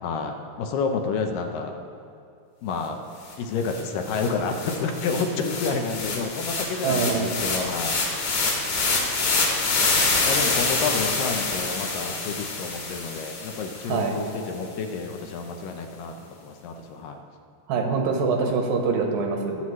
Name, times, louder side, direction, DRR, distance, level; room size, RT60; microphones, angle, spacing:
voice 1, 0.0-1.7 2.6-3.0 3.4-8.2 10.2-17.2, left 4 dB, 80° left, 4 dB, 2.5 m, -29 dB
sound 1, 3.3-3.4 3.7-14.0, left 3 dB, 60° left, 2.9 m, -26 dB
voice 2, 6.8-7.4 13.9-14.2 17.7-19.6, right 4 dB, 80° right, 3 dB, 2.7 m, -24 dB
20.0 x 7.5 x 3.2 m, 2.5 s
omnidirectional pair, 3.9 m